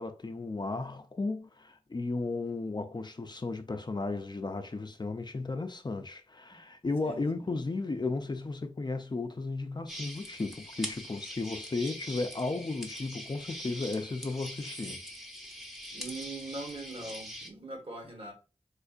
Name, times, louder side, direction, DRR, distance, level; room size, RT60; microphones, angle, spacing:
voice 1, 0.0-15.0, left 3 dB, 35° left, 0.4 m, -34 dB
voice 2, 7.0-7.5 15.9-18.3, right 2 dB, 50° right, 1.3 m, -42 dB
sound 1, 9.9-17.5, equal, 5° right, 0.8 m, -43 dB
4.4 x 2.5 x 2.4 m
wide cardioid pair, 65°, 12 cm